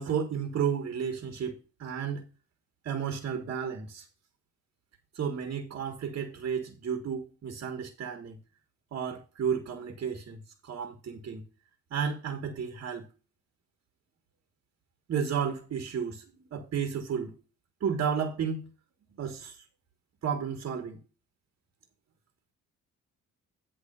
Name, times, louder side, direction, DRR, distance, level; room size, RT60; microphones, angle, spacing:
voice 1, 0.0-2.2 2.8-4.0 5.1-8.4 8.9-11.4 11.9-13.1 15.1-16.2 16.5-17.3 17.8-18.7 19.2-19.6 20.2-21.0, right 7 dB, 50° right, 1.4 m, -32 dB
9.7 x 3.3 x 6.6 m
cardioid pair, 90°, 30 cm